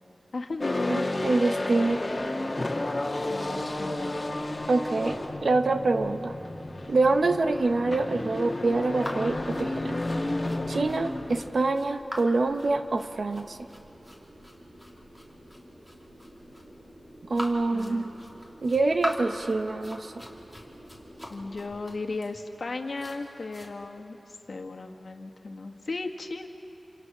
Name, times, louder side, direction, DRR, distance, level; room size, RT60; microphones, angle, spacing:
voice 1, 0.3-1.1 3.3-4.2 17.7-18.1 21.3-26.5, left 3 dB, 65° left, 3 dB, 1.7 m, -36 dB
sound 1, 0.6-11.5, left 2 dB, 35° left, 2.0 m, -32 dB
voice 2, 0.9-2.0 4.7-6.3 6.9-10.0 10.7-13.6 17.3-18.1 18.6-20.1, right 3 dB, 70° right, 8 dB, 1.0 m, -25 dB
sound 2, 2.8-21.6, equal, 55° right, 5.3 m, -51 dB
sound 3, 9.0-23.7, equal, 10° right, 3.2 m, -42 dB
28.0 x 26.5 x 6.1 m, 3.0 s
wide cardioid pair, 85°, 0 cm